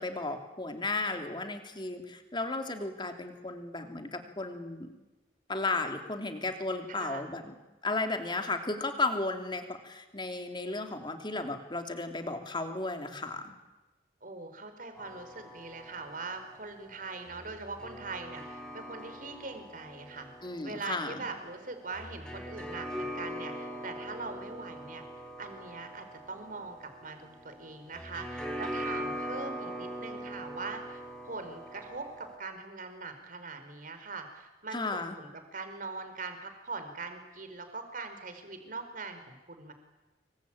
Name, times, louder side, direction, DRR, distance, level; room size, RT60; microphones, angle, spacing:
voice 1, 0.0-4.9 5.5-7.5 7.8-13.5 20.4-21.2 34.7-35.2, left 3 dB, 25° left, 5 dB, 3.1 m, -34 dB
voice 2, 6.9-7.2 14.2-20.3 20.6-25.0 25.4-39.7, right 3 dB, 50° right, 7 dB, 4.4 m, -42 dB
sound 1, 15.0-32.4, equal, 5° left, 5.0 m, -42 dB
26.5 x 24.5 x 8.8 m, 1.1 s
head